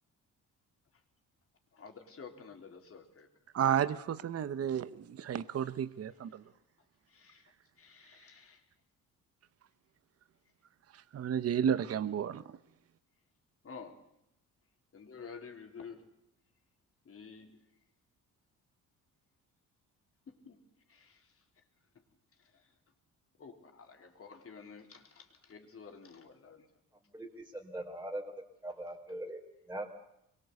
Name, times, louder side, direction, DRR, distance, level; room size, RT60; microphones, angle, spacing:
voice 1, 1.8-3.3 7.1-7.4 7.8-8.6 13.6-14.0 14.9-16.0 17.1-17.6 20.3-20.6 20.9-21.2 23.4-26.7, left 5 dB, 45° left, 4.0 m, -50 dB
voice 2, 3.5-6.4 10.9-12.6, right 9 dB, 45° right, 1.0 m, -32 dB
voice 3, 27.1-28.2 28.6-29.4 29.7-29.8, right 1 dB, 5° right, 3.8 m, -40 dB
25.0 x 22.5 x 8.2 m
cardioid pair, 105°, 33 cm